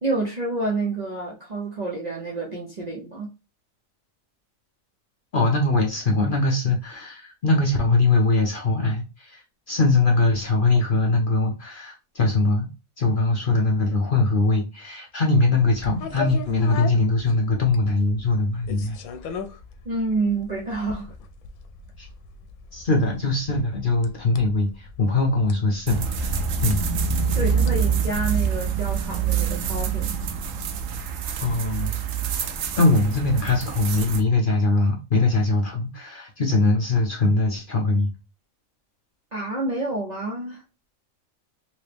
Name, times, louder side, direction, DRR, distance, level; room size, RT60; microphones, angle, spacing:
voice 1, 0.0-3.3 19.8-21.1 27.3-30.1 39.3-40.6, right 2 dB, 45° right, 0.5 m, -28 dB
voice 2, 5.3-12.7 13.0-19.0 19.2-19.3 22.0-22.1 22.7-26.8 31.4-31.9 32.3-32.4 32.8-38.1, left 2 dB, 50° left, 0.7 m, -22 dB
sound 1, 15.6-29.8, left 5 dB, 85° left, 1.0 m, -39 dB
sound 2, 25.9-34.2, right 6 dB, 70° right, 0.9 m, -26 dB
3.1 x 2.9 x 3.3 m
omnidirectional pair, 1.4 m